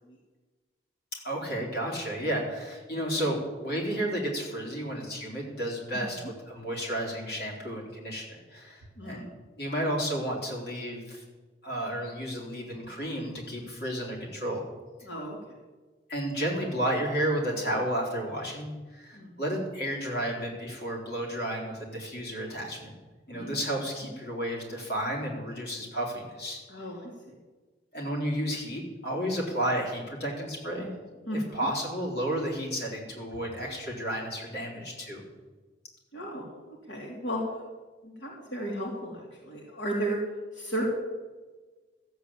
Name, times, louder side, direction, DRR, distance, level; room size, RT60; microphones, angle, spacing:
voice 1, 1.2-9.2 9.6-11.2 11.6-14.7 16.1-22.9 23.3-26.9 27.9-30.9 31.3-35.2, equal, 60° left, -2 dB, 3.9 m, -32 dB
voice 2, 9.0-9.3 15.0-15.4 19.1-19.3 23.3-23.6 26.7-27.3 31.3-31.7 36.1-37.4 38.0-40.2 40.5-40.8, right 1 dB, 85° left, -2 dB, 2.9 m, -34 dB
14.0 x 8.1 x 8.7 m, 1.3 s
head